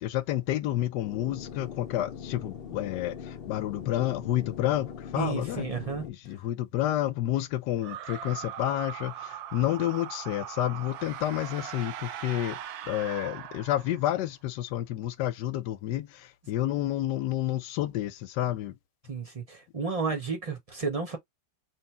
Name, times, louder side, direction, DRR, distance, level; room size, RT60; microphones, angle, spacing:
voice 1, 0.0-5.7 6.1-12.6 12.9-18.7, left 13 dB, 85° left, 1.2 m, -30 dB
sound 1, 1.0-6.1, left 7 dB, 60° left, 0.6 m, -41 dB
voice 2, 5.1-6.0 19.1-21.2, right 5 dB, 35° right, 0.6 m, -32 dB
sound 2, 7.8-14.2, right 11 dB, 75° right, 1.0 m, -40 dB
3.2 x 2.5 x 4.4 m
omnidirectional pair, 1.8 m